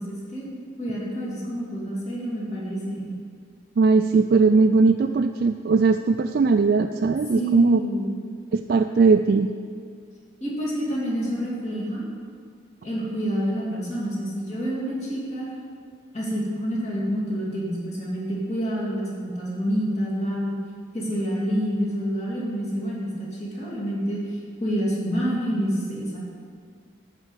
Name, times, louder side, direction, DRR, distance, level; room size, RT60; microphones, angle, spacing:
voice 1, 0.0-3.1 7.3-8.1 10.4-12.0 12.8-15.5 16.1-20.5 20.9-26.2, equal, 35° left, -6 dB, 2.7 m, -28 dB
voice 2, 3.8-7.8 8.5-9.5, right 4 dB, 55° right, 6 dB, 0.3 m, -19 dB
11.0 x 4.8 x 8.1 m, 2.1 s
head